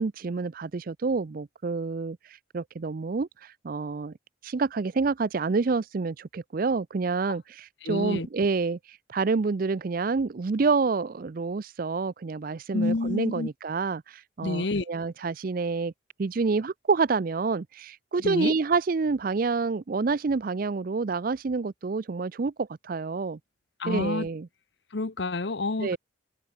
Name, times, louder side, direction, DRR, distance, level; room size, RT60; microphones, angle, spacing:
voice 1, 0.0-2.2 2.5-4.1 4.4-15.9 16.2-23.4 23.9-24.5 25.8-26.0, right 4 dB, 45° right, 0.4 m, -28 dB
voice 2, 7.8-8.3 12.7-13.5 14.4-14.8 18.2-18.5 23.8-24.3 24.9-26.0, left 2 dB, 60° left, 0.9 m, -28 dB
open air
head